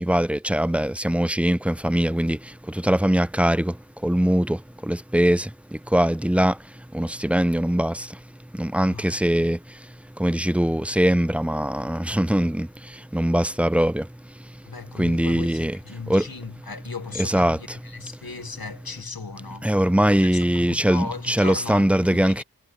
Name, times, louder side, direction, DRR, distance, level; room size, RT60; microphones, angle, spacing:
voice 1, 0.0-8.2 8.5-14.5 14.9-15.8 16.1-16.3 17.2-17.8 19.6-22.4, right 1 dB, 5° right, 0.4 m, -22 dB
voice 2, 8.8-9.2 14.6-19.7 20.2-22.4, left 4 dB, 80° left, 1.6 m, -37 dB
wide cardioid pair, 45°, 36 cm